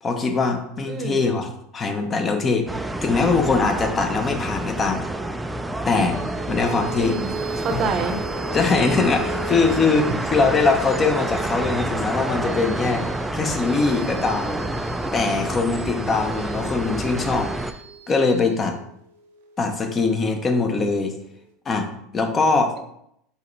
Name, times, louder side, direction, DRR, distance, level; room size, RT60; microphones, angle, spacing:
voice 1, 0.0-5.1 5.8-6.2 6.5-7.2 7.5-7.8 8.5-13.0 13.3-14.6 15.1-17.8 18.1-18.7 19.6-21.1 21.7-21.9 22.1-22.7, left 4 dB, 30° left, 5 dB, 0.8 m, -22 dB
voice 2, 0.9-1.3 7.0-8.2, right 4 dB, 40° right, 6 dB, 0.7 m, -27 dB
sound 1, 2.7-17.7, right 1 dB, 10° right, 0.3 m, -28 dB
sound 2, 6.1-20.8, right 2 dB, 85° right, 0.8 m, -39 dB
4.7 x 3.3 x 3.2 m, 0.74 s
hypercardioid pair, 95°, 0 cm